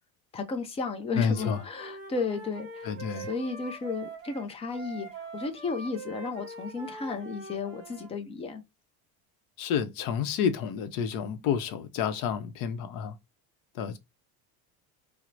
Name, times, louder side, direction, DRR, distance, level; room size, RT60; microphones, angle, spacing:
voice 1, 0.3-2.9 3.3-5.1 5.3-8.6, left 4 dB, 15° left, 0.3 m, -33 dB
voice 2, 1.2-1.6 2.8-3.3 9.6-13.2 13.7-14.0, left 7 dB, 55° left, 0.7 m, -29 dB
Wind instrument woodwind instrument, 1.3-8.1, right 3 dB, 30° right, 1.3 m, -43 dB
4.5 x 2.0 x 2.5 m
cardioid pair, 150°, 38 cm